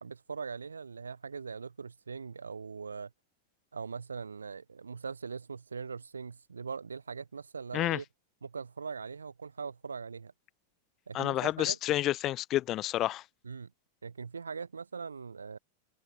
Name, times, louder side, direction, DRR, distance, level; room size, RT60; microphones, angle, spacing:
voice 1, 0.0-3.1 3.7-8.1 8.4-10.3 11.1-11.8 13.4-13.7 14.0-15.6, right 5 dB, 75° right, 2.2 m, -41 dB
voice 2, 11.1-13.2, left 14 dB, 35° left, 1.5 m, -29 dB
figure-of-eight pair, 90°, 0 cm